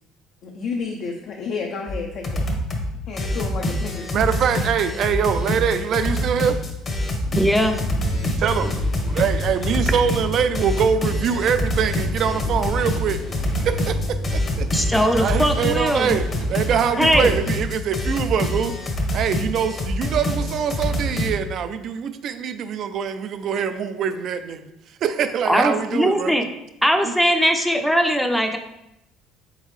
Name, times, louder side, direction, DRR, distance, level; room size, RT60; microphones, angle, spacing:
voice 1, 0.4-2.5 3.1-4.1 15.2-15.3 16.9-17.1, left 4 dB, 55° left, 2 dB, 0.5 m, -31 dB
sound 1, 1.9-2.0 2.2-2.9 3.2-21.3, equal, 35° left, 0.8 m, -26 dB
voice 2, 4.1-6.6 8.4-8.8 9.1-13.2 13.6-14.7 15.2-18.7 19.1-24.7 25.0-26.3 27.0-27.1, right 7 dB, 55° right, 10 dB, 0.4 m, -23 dB
sound 2, 7.2-16.5, left 1 dB, 85° left, 1.2 m, -30 dB
voice 3, 7.3-7.8 14.7-16.2 17.0-17.4 25.4-26.5 26.8-28.6, equal, ahead, 5 dB, 0.5 m, -20 dB
3.9 x 3.7 x 3.2 m, 0.87 s
supercardioid pair, 100°, 0 cm